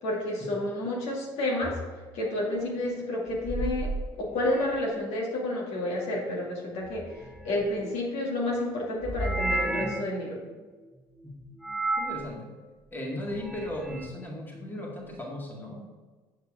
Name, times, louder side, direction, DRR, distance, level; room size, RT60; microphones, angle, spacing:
voice 1, 0.0-1.8 2.1-3.9 4.2-7.0 7.4-10.4, left 1 dB, 70° left, -3 dB, 2.2 m, -30 dB
sound 1, 1.6-1.9 3.3-5.0 6.8-8.0 9.0-10.2 11.6-12.3 13.2-14.1, right 1 dB, ahead, 0.8 m, -33 dB
voice 2, 12.0-12.5 12.9-15.9, left 1 dB, 20° left, -2 dB, 2.1 m, -36 dB
8.2 x 5.6 x 3.7 m, 1.3 s
supercardioid pair, 80°, 11 cm